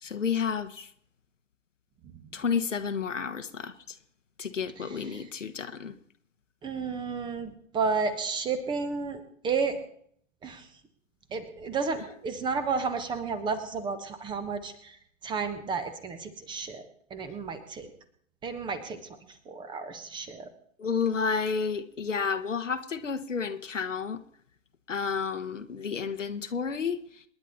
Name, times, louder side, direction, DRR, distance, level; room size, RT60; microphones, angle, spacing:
voice 1, 0.0-0.9 2.3-4.0 4.4-5.9 20.8-24.2 24.9-27.0, left 6 dB, 70° left, 1.4 m, -31 dB
voice 2, 4.8-5.2 6.6-9.8 10.4-10.7 11.3-15.0 15.2-17.9 18.4-19.0 19.5-20.5, right 5 dB, 10° right, 1.2 m, -32 dB
27.5 x 10.5 x 4.2 m
figure-of-eight pair, 120°, 39 cm